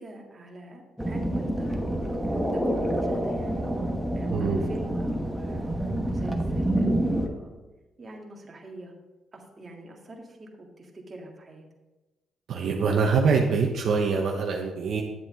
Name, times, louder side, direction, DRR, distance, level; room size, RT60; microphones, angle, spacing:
voice 1, 0.0-2.1 2.5-3.7 4.1-7.6 8.0-8.9 9.3-11.7, right 2 dB, 30° right, 0 dB, 1.9 m, -45 dB
sound 1, 1.0-7.3, right 1 dB, 5° right, 1.2 m, -27 dB
voice 2, 12.5-15.0, right 5 dB, 65° right, 0 dB, 1.0 m, -24 dB
9.5 x 7.9 x 3.7 m, 1.1 s
cardioid pair, 90°, 0 cm